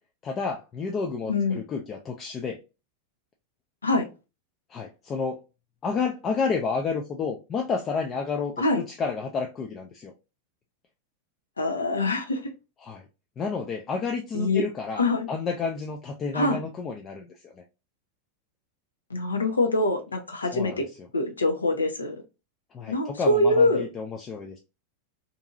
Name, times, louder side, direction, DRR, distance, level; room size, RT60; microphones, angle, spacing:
voice 1, 0.2-2.6 4.7-5.4 5.8-10.1 12.8-13.0 13.4-17.5 20.5-20.8 22.7-24.6, left 5 dB, 25° left, 0.4 m, -30 dB
voice 2, 1.3-1.6 3.8-4.1 8.6-8.8 11.6-12.4 14.3-14.6 15.0-15.3 16.3-16.6 19.1-20.8 21.1-22.2 22.9-23.8, left 2 dB, 75° left, 0.7 m, -24 dB
2.7 x 2.6 x 2.4 m
figure-of-eight pair, 90°, 0 cm